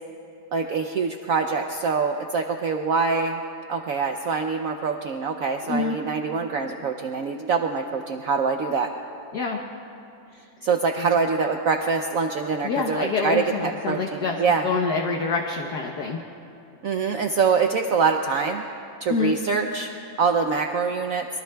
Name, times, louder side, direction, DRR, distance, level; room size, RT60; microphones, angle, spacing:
voice 1, 0.5-3.4 3.7-8.9 10.6-14.7 16.8-18.6 19.0-19.9 20.2-21.3, right 5 dB, 85° right, 4 dB, 0.7 m, -24 dB
voice 2, 12.6-14.4 14.6-16.2 19.1-19.4, left 4 dB, 60° left, 1 dB, 1.3 m, -26 dB
24.0 x 22.5 x 2.3 m, 2.8 s
omnidirectional pair, 2.2 m